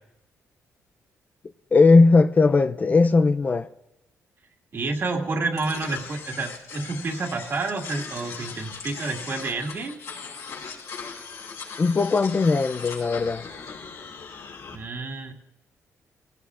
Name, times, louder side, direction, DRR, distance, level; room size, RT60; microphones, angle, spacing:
voice 1, 1.7-3.7 11.8-13.4, left 3 dB, 30° left, 0.4 m, -18 dB
voice 2, 4.7-10.0 14.7-15.3, right 3 dB, 50° right, 2.2 m, -29 dB
sound 1, 5.6-14.7, left 5 dB, 75° left, 5.0 m, -39 dB
21.0 x 17.0 x 2.5 m
cardioid pair, 105°, 5 cm